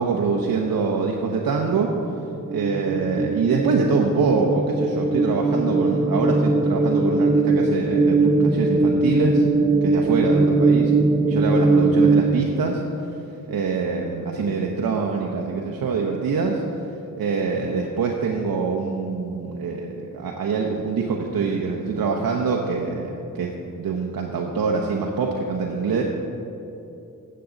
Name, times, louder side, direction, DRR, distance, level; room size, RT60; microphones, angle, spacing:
voice 1, 0.0-1.9 2.5-9.5 9.8-10.8 11.3-12.8 13.5-16.6 17.2-26.0, right 5 dB, 70° right, 0 dB, 0.9 m, -24 dB
sound 1, 1.7-12.2, right 3 dB, 15° right, 0.6 m, -20 dB
13.0 x 7.8 x 3.9 m, 2.8 s
cardioid pair, 55°, 36 cm